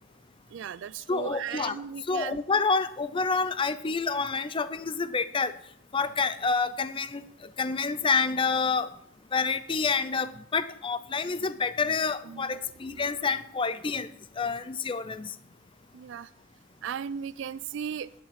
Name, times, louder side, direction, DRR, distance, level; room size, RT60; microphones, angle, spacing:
voice 1, 0.5-2.4 12.3-12.6 12.9-13.1 15.9-16.3 16.8-18.2, right 7 dB, 60° right, 17 dB, 0.3 m, -37 dB
voice 2, 1.1-1.8 2.1-5.5 5.9-7.2 7.6-8.9 9.3-14.1 14.4-15.3, left 4 dB, 25° left, 14 dB, 0.5 m, -28 dB
10.5 x 8.1 x 5.8 m, 0.73 s
head